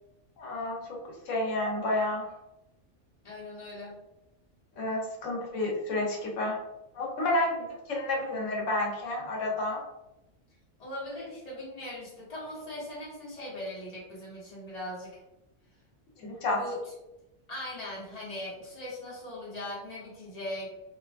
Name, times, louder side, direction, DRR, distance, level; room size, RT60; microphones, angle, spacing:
voice 1, 0.4-1.0 1.3-2.3 4.8-6.6 6.9-9.8 16.2-16.6, left 2 dB, 85° left, -1 dB, 1.1 m, -30 dB
voice 2, 3.2-4.0 10.8-15.1 16.5-16.9 17.5-20.7, left 1 dB, 35° left, -6 dB, 1.1 m, -39 dB
2.6 x 2.3 x 3.2 m, 0.93 s
omnidirectional pair, 1.2 m